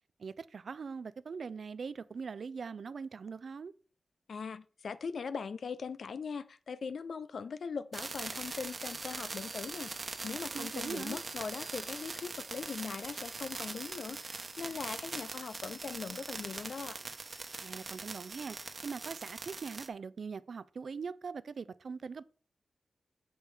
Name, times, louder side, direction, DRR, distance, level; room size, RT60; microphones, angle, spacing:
voice 1, 0.2-3.7 10.5-11.2 17.6-18.6 18.8-22.2, right 5 dB, 70° right, 0.4 m, -41 dB
voice 2, 4.3-17.0, left 5 dB, 75° left, 0.5 m, -40 dB
sound 1, 7.9-19.9, right 3 dB, 45° right, 1.0 m, -42 dB
7.0 x 5.4 x 4.8 m
cardioid pair, 70°, 0 cm